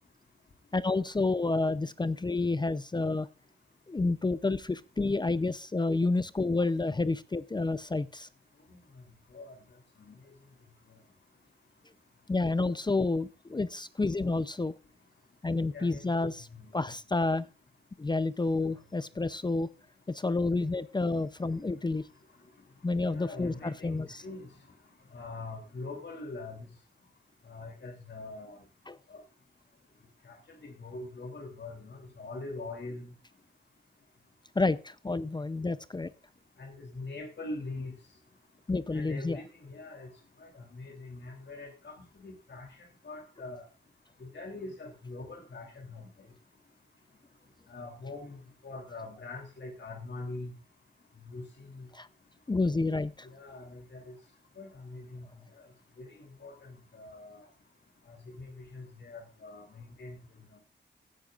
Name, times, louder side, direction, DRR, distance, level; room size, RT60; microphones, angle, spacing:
voice 1, 0.7-3.3 3.9-8.3 12.3-14.7 15.4-16.5 16.7-17.5 18.0-19.7 20.1-22.0 22.8-24.2 28.9-29.0 34.6-36.1 38.7-39.4 51.9-52.1 52.5-53.3, left 3 dB, 25° left, 15 dB, 0.6 m, -29 dB
voice 2, 15.7-16.1 16.8-16.9 23.1-24.5 25.1-26.6 27.5-28.6 29.1-29.2 30.3-30.4 30.6-33.1 36.6-37.9 38.9-40.1 40.4-42.7 43.0-43.7 44.2-46.1 47.7-50.5 51.3-51.9 53.2-54.1 54.6-55.3 56.0-57.4 58.1-60.2, left 2 dB, 65° left, 3 dB, 3.1 m, -43 dB
16.0 x 10.5 x 2.5 m, 0.33 s
wide cardioid pair, 100°, 19 cm